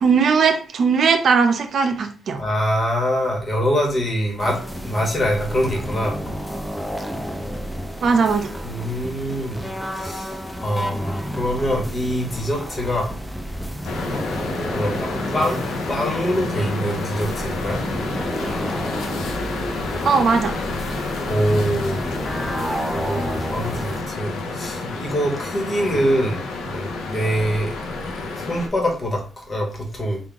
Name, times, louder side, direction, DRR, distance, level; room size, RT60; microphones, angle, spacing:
voice 1, 0.0-2.4 8.0-8.5 20.0-20.5, right 5 dB, 65° right, 0.6 m, -18 dB
voice 2, 2.4-6.3 8.6-13.1 14.7-15.6 15.9-17.8 18.4-18.5 18.8-19.0 21.3-22.0 22.3-22.4 22.9-27.8 28.3-30.2, equal, 35° left, 1.4 m, -24 dB
sound 1, 4.4-24.0, equal, 5° left, 0.6 m, -31 dB
sound 2, 13.8-28.7, left 3 dB, 90° left, 0.6 m, -29 dB
3.7 x 2.5 x 3.5 m
cardioid pair, 80°, 0 cm